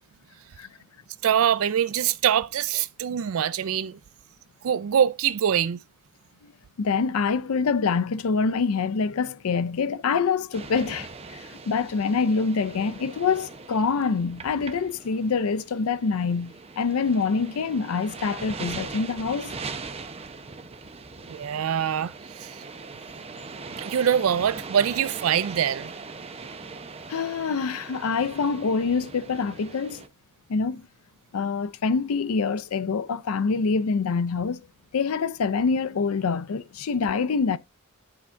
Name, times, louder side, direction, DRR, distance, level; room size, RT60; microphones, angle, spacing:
voice 1, 1.2-4.0 4.6-5.8 21.3-22.6 23.8-25.9, right 9 dB, 75° right, 0.4 m, -24 dB
voice 2, 6.8-19.6 27.1-30.0 30.5-30.9 31.3-34.6 34.9-37.6, left 5 dB, 85° left, 0.5 m, -25 dB
sound 1, 10.5-30.1, right 4 dB, 30° right, 0.7 m, -40 dB
9.8 x 4.4 x 3.6 m
head